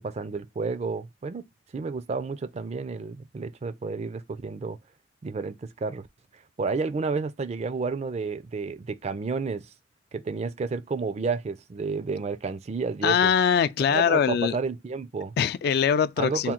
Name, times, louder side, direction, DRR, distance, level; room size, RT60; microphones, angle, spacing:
voice 1, 0.0-1.5 1.7-4.8 5.2-6.1 6.3-9.7 10.1-13.3 13.9-15.4 16.2-16.5, right 4 dB, 40° right, 0.4 m, -31 dB
voice 2, 13.0-14.6 15.4-16.5, left 7 dB, 60° left, 0.3 m, -22 dB
3.6 x 2.2 x 4.3 m
head